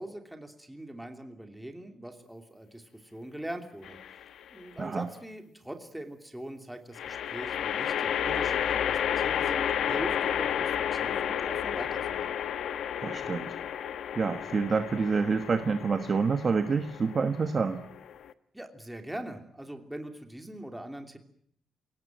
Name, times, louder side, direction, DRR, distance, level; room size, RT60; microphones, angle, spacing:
voice 1, 0.0-4.0 4.5-12.4 18.5-21.2, right 1 dB, 5° right, 5 dB, 2.9 m, -42 dB
sound 1, 3.8-4.4 6.9-18.3, left 9 dB, 65° left, 1.1 m, -31 dB
voice 2, 13.0-13.6 14.2-17.8, right 5 dB, 30° right, 8 dB, 1.3 m, -27 dB
29.0 x 18.0 x 9.1 m, 0.66 s
cardioid pair, 165°, 0 cm